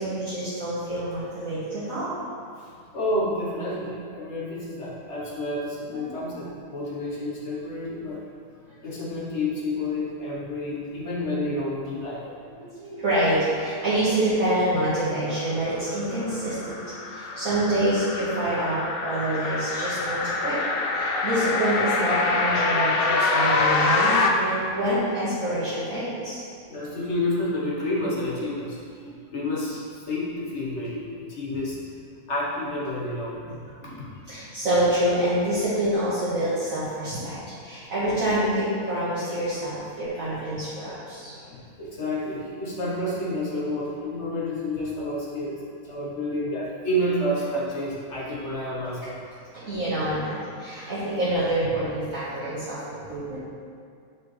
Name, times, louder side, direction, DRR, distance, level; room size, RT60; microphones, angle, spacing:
voice 1, 0.0-2.1 5.9-6.1 12.6-20.6 20.9-26.4 29.0-29.1 31.5-31.6 33.8-34.0 34.3-41.3 49.5-53.4, right 1 dB, 60° right, -14 dB, 2.0 m, -27 dB
voice 2, 2.6-8.2 8.8-12.3 16.8-17.5 21.1-21.2 26.7-31.8 32.3-33.4 41.3-49.2, left 1 dB, 50° left, -6 dB, 1.4 m, -30 dB
sound 1, 15.9-24.3, left 3 dB, 70° left, 0.5 m, -25 dB
8.2 x 5.0 x 3.3 m, 2.3 s
omnidirectional pair, 1.7 m